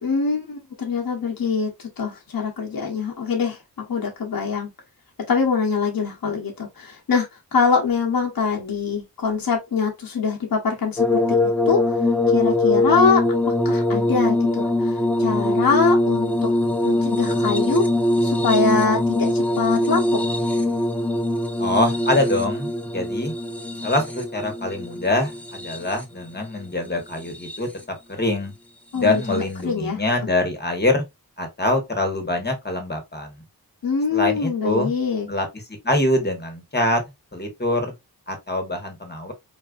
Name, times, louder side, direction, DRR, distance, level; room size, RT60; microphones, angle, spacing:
voice 1, 0.0-4.7 5.3-11.0 11.7-12.0 12.3-13.2 13.6-16.5 16.8-17.8 18.2-20.2 28.9-30.3 33.8-35.3, left 5 dB, 60° left, 0.9 m, -23 dB
sound 1, 11.0-26.2 27.1-27.8 29.2-29.4, left 1 dB, 5° left, 0.6 m, -22 dB
voice 2, 21.6-23.3 23.8-27.7 28.2-28.5 28.9-31.0 31.4-33.3 34.1-34.9 35.3-35.5 35.8-37.0 37.3-37.9 38.3-39.3, left 1 dB, 25° left, 1.1 m, -24 dB
3.9 x 2.4 x 2.3 m
wide cardioid pair, 65°, 38 cm